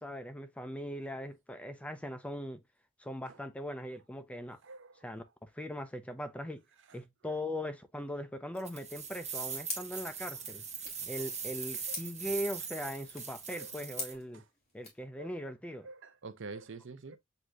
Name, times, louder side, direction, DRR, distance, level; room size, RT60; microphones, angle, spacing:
voice 1, 0.0-2.6 3.0-4.6 5.0-6.6 6.9-10.6 11.1-14.4 14.7-15.9, equal, 5° left, 0.5 m, -40 dB
voice 2, 4.6-5.1 6.9-7.4 10.3-10.4 11.0-11.3 11.9-12.1 12.8-12.9 13.6-13.7 14.3-14.5 15.1-15.3 15.8-17.2, right 3 dB, 65° right, 0.7 m, -48 dB
sound 1, 8.6-14.1, right 6 dB, 35° right, 1.0 m, -41 dB
sound 2, 9.6-15.0, left 3 dB, 35° left, 2.4 m, -46 dB
7.8 x 2.8 x 2.3 m
head